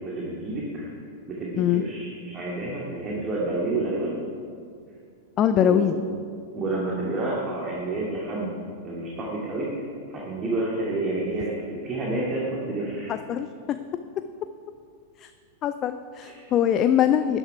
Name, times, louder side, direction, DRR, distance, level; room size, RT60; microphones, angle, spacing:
voice 1, 0.0-0.9 1.3-4.2 5.5-6.0 6.5-8.5 8.8-13.1 16.2-16.5, right 2 dB, 25° right, -4 dB, 2.2 m, -29 dB
voice 2, 5.4-5.9 13.1-13.5 15.2-15.3 15.6-17.4, left 10 dB, 30° left, 10 dB, 0.4 m, -22 dB
13.0 x 9.9 x 4.7 m, 2.2 s
figure-of-eight pair, 95°, 0 cm